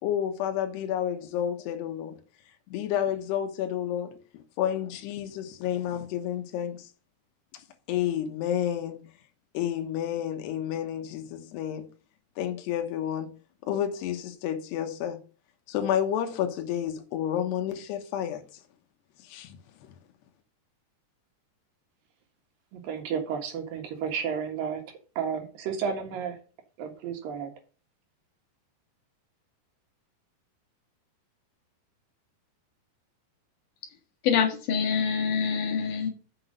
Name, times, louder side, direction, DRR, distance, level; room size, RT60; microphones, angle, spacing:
voice 1, 0.0-2.2 2.7-4.1 4.6-6.9 7.9-9.0 9.5-11.8 12.4-13.3 13.6-15.2 15.7-18.4 19.2-19.6, left 10 dB, 75° left, 3.1 m, -30 dB
voice 2, 22.7-26.4 26.8-27.5, right 6 dB, 60° right, 2.9 m, -32 dB
voice 3, 34.2-36.1, left 6 dB, 55° left, 2.7 m, -25 dB
7.0 x 6.0 x 6.6 m
omnidirectional pair, 5.0 m